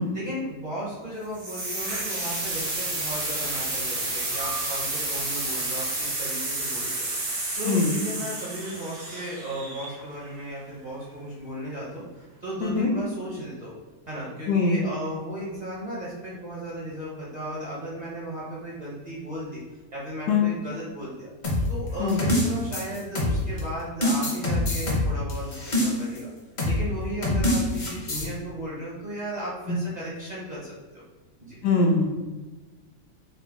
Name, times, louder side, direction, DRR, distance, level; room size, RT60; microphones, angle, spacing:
voice 1, 0.1-7.1 7.5-13.7 14.1-19.6 19.9-21.3 21.7-26.3 26.6-31.0 31.4-31.6, right 1 dB, 40° right, -8 dB, 0.6 m, -35 dB
sound 1, 1.3-10.2, right 2 dB, 70° right, 1.6 m, -30 dB
voice 2, 14.5-14.8 20.3-20.5 22.0-22.2 29.7-29.8 31.6-32.1, left 4 dB, 75° left, 2 dB, 1.1 m, -22 dB
sound 2, 21.4-23.6 24.0-26.2 26.6-26.8 27.2-28.3, left 1 dB, 45° left, 0.6 m, -25 dB
3.9 x 2.0 x 3.4 m, 1.3 s
omnidirectional pair, 1.7 m